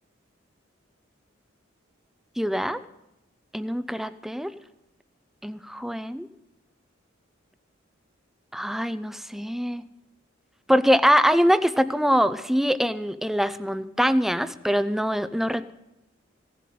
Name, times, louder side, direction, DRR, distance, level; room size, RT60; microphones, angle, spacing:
voice 1, 2.4-2.8 3.5-4.5 5.4-6.3 8.5-9.8 10.7-15.7, equal, ahead, 14 dB, 0.5 m, -23 dB
16.0 x 7.5 x 9.3 m, 0.92 s
head